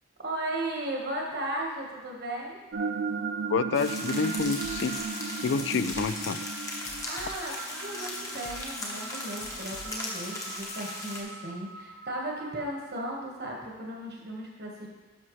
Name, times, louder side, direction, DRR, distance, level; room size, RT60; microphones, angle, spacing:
voice 1, 0.2-2.6 7.1-14.9, right 1 dB, 50° right, -1 dB, 1.4 m, -36 dB
sound 1, 2.7-12.7, right 5 dB, 65° right, 0.5 m, -37 dB
voice 2, 3.5-4.9 5.4-6.4, left 5 dB, 65° left, 13 dB, 0.3 m, -28 dB
sound 2, 3.7-11.2, left 1 dB, 15° left, 0.9 m, -38 dB
sound 3, 4.6-10.9, left 4 dB, 85° left, 0.9 m, -47 dB
11.0 x 6.3 x 3.2 m, 1.3 s
head